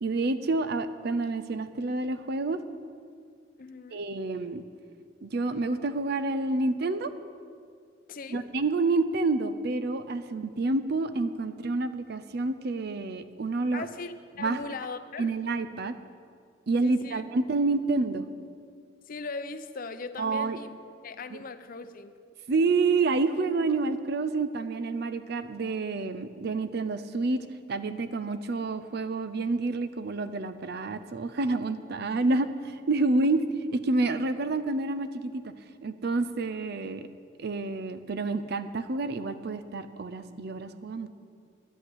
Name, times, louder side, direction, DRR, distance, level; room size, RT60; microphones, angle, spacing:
voice 1, 0.0-2.6 3.9-4.6 5.2-7.1 8.3-13.9 14.4-14.6 15.2-16.0 16.7-18.3 20.2-20.6 21.3-21.4 22.5-33.4 33.7-35.4 35.8-37.1 37.4-41.1, right 3 dB, 60° right, 12 dB, 0.6 m, -28 dB
voice 2, 3.6-4.0 8.1-8.5 13.7-15.3 16.8-17.2 19.1-20.7 21.0-22.1, left 4 dB, 50° left, 10 dB, 0.6 m, -39 dB
10.0 x 8.5 x 7.9 m, 2.2 s
head